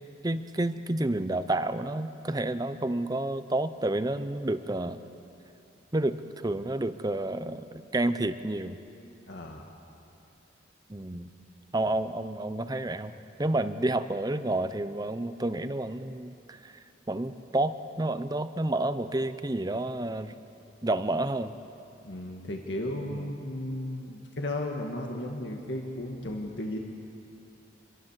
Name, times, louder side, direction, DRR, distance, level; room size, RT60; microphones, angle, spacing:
voice 1, 0.0-5.0 5.9-8.8 10.9-11.3 11.7-13.1 13.4-20.3 20.8-21.5 23.1-23.3, right 1 dB, 20° right, 11 dB, 0.6 m, -30 dB
voice 2, 9.3-9.7 22.0-26.8, left 1 dB, 70° left, 1 dB, 1.9 m, -35 dB
27.0 x 22.5 x 7.4 m, 2.7 s
head